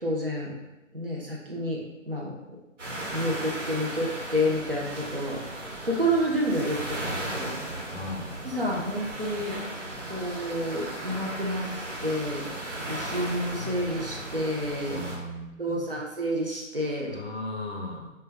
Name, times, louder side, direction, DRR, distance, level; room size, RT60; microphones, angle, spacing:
voice 1, 0.0-0.5 0.9-2.3 3.1-7.5 8.4-9.6 10.1-11.7 12.0-15.0 15.6-17.2, equal, 50° right, -2 dB, 0.4 m, -29 dB
sound 1, 2.8-15.2, right 1 dB, 70° right, 1.0 m, -36 dB
voice 2, 7.9-8.3 14.9-16.0 17.1-18.1, left 1 dB, 55° left, 0 dB, 0.5 m, -37 dB
2.2 x 2.1 x 3.2 m, 1.0 s
figure-of-eight pair, 170°, 39 cm